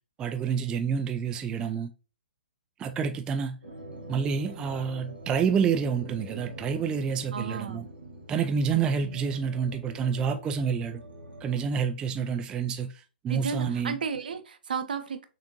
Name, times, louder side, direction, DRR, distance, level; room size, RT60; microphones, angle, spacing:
voice 1, 0.2-1.9 2.8-3.6 4.1-7.8 8.3-11.0 11.4-14.0, right 6 dB, 15° right, 0.3 m, -28 dB
sound 1, 3.6-11.7, right 1 dB, 85° right, 1.0 m, -44 dB
voice 2, 7.3-7.8 8.7-9.2 13.3-15.3, right 6 dB, 60° right, 0.7 m, -34 dB
6.5 x 2.5 x 2.9 m
figure-of-eight pair, 120°, 5 cm